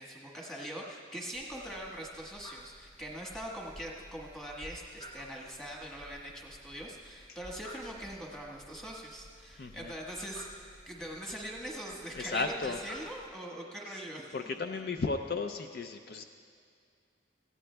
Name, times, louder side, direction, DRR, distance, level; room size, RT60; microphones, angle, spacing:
voice 1, 0.0-14.3, right 1 dB, 5° left, -3 dB, 1.3 m, -42 dB
sound 1, 1.3-13.3, equal, 25° left, 0.7 m, -53 dB
voice 2, 9.6-9.9 12.2-12.8 14.3-16.2, left 4 dB, 55° left, 7 dB, 0.4 m, -34 dB
17.5 x 15.0 x 2.2 m, 2.3 s
head